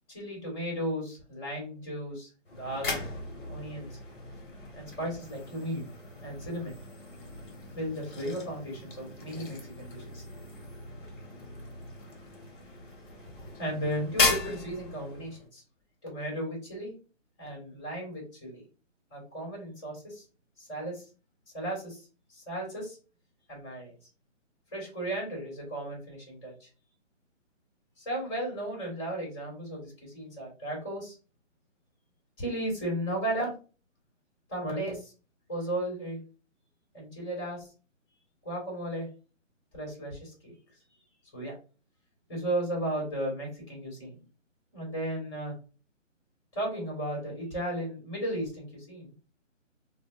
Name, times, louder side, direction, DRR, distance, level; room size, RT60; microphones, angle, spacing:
voice 1, 0.1-3.0 3.5-4.0 4.8-5.9 6.2-6.8 7.7-10.2 13.3-15.6 16.0-16.9 17.4-18.6 19.1-20.2 20.6-21.1 21.5-23.0 23.5-23.9 24.7-26.7 28.0-31.2 32.4-33.5 34.5-35.1 35.5-36.2 36.9-37.7 38.4-39.1 39.7-40.5 41.3-41.5 42.3-44.2 44.7-45.5 46.5-49.1, right 1 dB, 20° left, -2 dB, 1.9 m, -35 dB
sound 1, 2.4-15.5, left 3 dB, 40° left, 1.2 m, -36 dB
5.0 x 2.1 x 2.5 m, 0.35 s
hypercardioid pair, 165°, 39 cm